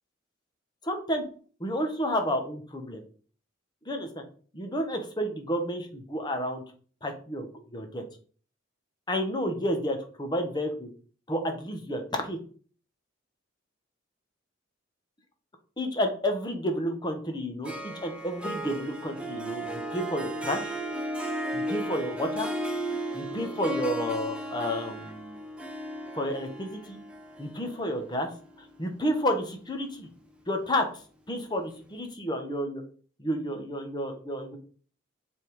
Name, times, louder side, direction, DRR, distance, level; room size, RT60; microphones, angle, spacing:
voice 1, 0.9-1.2 1.6-3.0 3.9-4.2 4.5-6.6 7.0-7.5 7.7-8.0 9.1-10.9 11.3-12.4 15.8-20.8 21.5-22.5 23.1-25.4 26.1-27.0 27.4-28.3 28.6-30.1 30.5-30.9 31.3-32.8 33.2-34.6, equal, 20° left, 5 dB, 1.2 m, -31 dB
Harp, 17.6-29.1, right 1 dB, 5° right, 0.8 m, -35 dB
7.5 x 3.7 x 4.8 m, 0.43 s
head